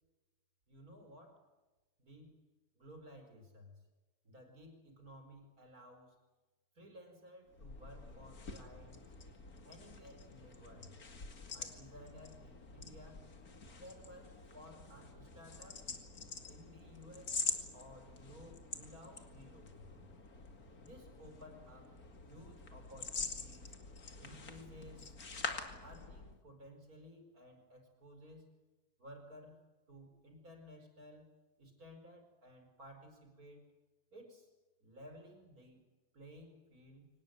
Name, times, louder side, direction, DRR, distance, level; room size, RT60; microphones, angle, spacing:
voice 1, 0.7-1.5 2.0-2.4 2.8-3.8 4.2-6.2 6.8-9.1 9.6-10.9 11.5-13.3 13.8-15.9 16.5-20.1 20.8-22.0 22.3-23.7 24.2-25.2 25.8-28.5 29.0-29.6 29.9-33.7 34.1-34.5 34.8-35.9 36.1-37.1, equal, 55° right, 5 dB, 5.3 m, -56 dB
sound 1, 7.5-26.4, left 4 dB, 55° left, 2.8 m, -46 dB
24.0 x 19.5 x 9.4 m, 1.2 s
omnidirectional pair, 1.8 m